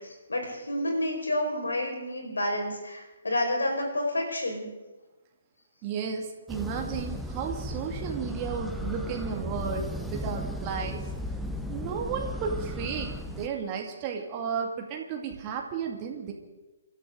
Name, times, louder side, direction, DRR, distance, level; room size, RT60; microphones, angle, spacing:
voice 1, 0.0-4.7, left 1 dB, 70° left, 2 dB, 5.1 m, -29 dB
voice 2, 5.8-11.0 11.7-16.3, right 6 dB, 25° right, 1 dB, 2.1 m, -33 dB
sound 1, 6.5-13.5, left 1 dB, ahead, 1.0 m, -35 dB
28.5 x 13.0 x 3.8 m, 1.1 s
figure-of-eight pair, 130°, 0 cm